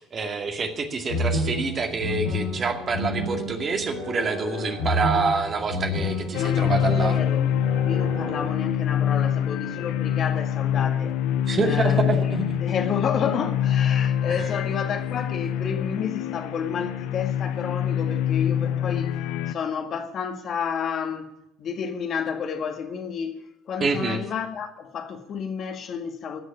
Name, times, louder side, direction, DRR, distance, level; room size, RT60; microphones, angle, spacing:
voice 1, 0.0-7.1 11.5-12.6 23.8-24.2, right 4 dB, 35° right, 2.2 m, -27 dB
sound 1, 1.1-8.5, left 1 dB, 90° left, 7.6 m, -30 dB
sound 2, 6.3-19.5, left 10 dB, 65° left, 0.5 m, -25 dB
voice 2, 6.4-7.5 7.9-11.2 11.6-12.4 12.6-21.3 21.6-23.4 23.7-26.4, left 7 dB, 50° left, 2.0 m, -30 dB
16.5 x 6.4 x 10.0 m
hypercardioid pair, 65°, 0 cm